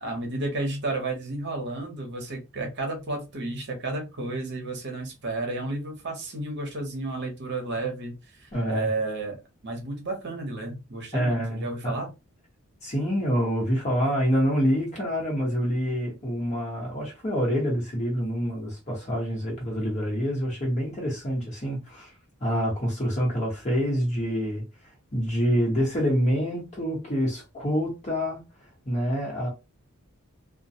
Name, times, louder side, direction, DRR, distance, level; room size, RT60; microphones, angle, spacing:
voice 1, 0.0-12.1, right 2 dB, 50° right, 0.8 m, -32 dB
voice 2, 8.5-8.9 11.1-12.0 12.8-22.1 22.4-24.6 25.1-28.4 28.8-29.5, equal, 30° left, 1.1 m, -26 dB
2.3 x 2.2 x 2.7 m
head